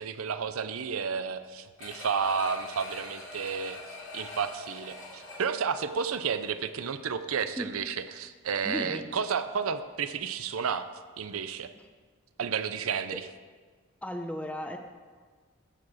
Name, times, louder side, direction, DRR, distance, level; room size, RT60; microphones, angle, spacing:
voice 1, 0.0-3.8 4.1-10.9 11.2-11.7 12.4-13.2, right 6 dB, 85° right, 11 dB, 0.6 m, -31 dB
sound 1, 1.8-6.6 7.0-7.1, left 2 dB, 70° left, 2.8 m, -44 dB
voice 2, 8.6-9.1 11.7-11.8 14.0-14.8, equal, 5° left, 5 dB, 0.7 m, -35 dB
14.5 x 4.9 x 6.2 m, 1.5 s
head